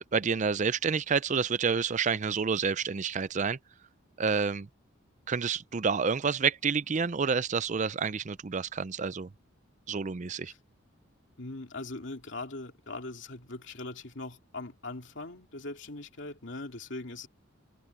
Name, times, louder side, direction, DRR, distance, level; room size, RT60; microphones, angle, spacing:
voice 1, 0.1-3.6 4.2-4.7 5.3-9.3 9.9-10.5, right 5 dB, 35° right, 0.4 m, -29 dB
voice 2, 11.4-17.3, left 2 dB, 60° left, 2.9 m, -41 dB
head